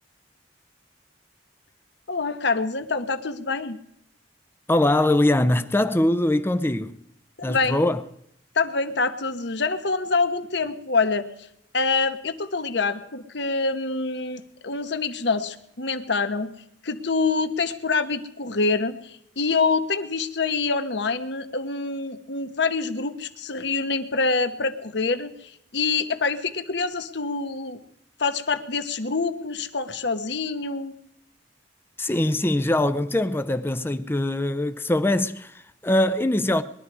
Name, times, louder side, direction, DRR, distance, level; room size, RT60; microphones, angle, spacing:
voice 1, 2.1-3.8 7.4-7.8 8.5-11.3 11.7-16.5 16.8-27.8 28.2-30.9, left 4 dB, 65° left, 1.1 m, -26 dB
voice 2, 4.7-7.0 7.4-8.0 32.0-36.6, left 1 dB, 10° left, 0.5 m, -22 dB
21.0 x 12.0 x 4.8 m
head